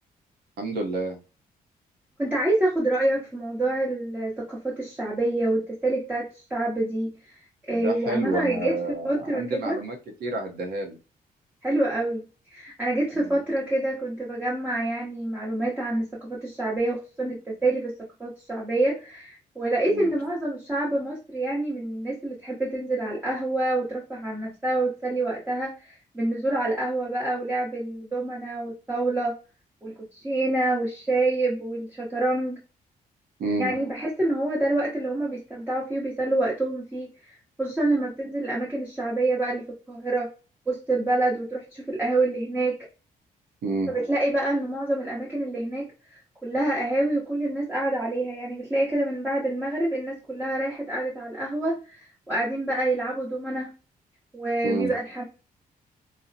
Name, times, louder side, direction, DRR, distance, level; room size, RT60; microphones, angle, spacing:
voice 1, 0.6-1.2 7.7-11.0 13.1-13.4 19.9-20.1 33.4-33.7 43.6-43.9 54.6-54.9, right 2 dB, 85° right, 3 dB, 0.7 m, -30 dB
voice 2, 2.2-7.1 7.6-8.7 9.0-9.8 11.6-12.2 12.5-17.9 18.2-29.3 29.8-32.6 33.6-37.1 37.6-40.3 40.7-42.8 43.9-52.0 52.3-53.7 54.3-55.2, right 2 dB, 10° right, -5 dB, 0.7 m, -27 dB
3.9 x 2.0 x 2.6 m, 0.33 s
cardioid pair, 165°, 16 cm